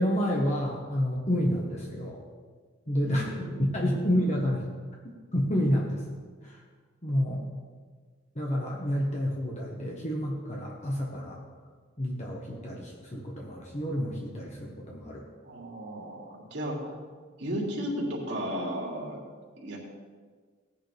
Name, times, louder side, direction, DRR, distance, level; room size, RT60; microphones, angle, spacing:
voice 1, 0.0-2.2 2.9-3.3 3.6-4.6 5.3-6.2 6.4-6.6 7.0-7.4 8.3-11.4 12.0-15.2, equal, 35° left, -2 dB, 1.5 m, -29 dB
voice 2, 3.0-3.7 4.0-4.2 15.4-17.1 17.4-19.2 19.6-19.8, equal, 65° right, -2 dB, 2.9 m, -34 dB
17.5 x 10.0 x 3.6 m, 1.5 s
head